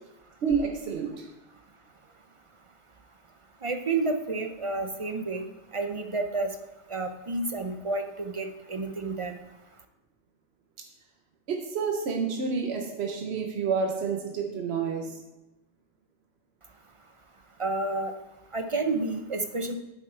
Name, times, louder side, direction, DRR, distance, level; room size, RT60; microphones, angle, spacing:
voice 1, 0.4-1.3 10.8-10.9 11.5-15.2, right 5 dB, 75° right, 3 dB, 1.2 m, -29 dB
voice 2, 3.6-5.4 5.7-6.5 6.9-9.4 17.6-18.1 18.5-19.8, right 3 dB, 40° right, 6 dB, 0.5 m, -30 dB
8.6 x 8.2 x 3.3 m, 0.95 s
omnidirectional pair, 1.1 m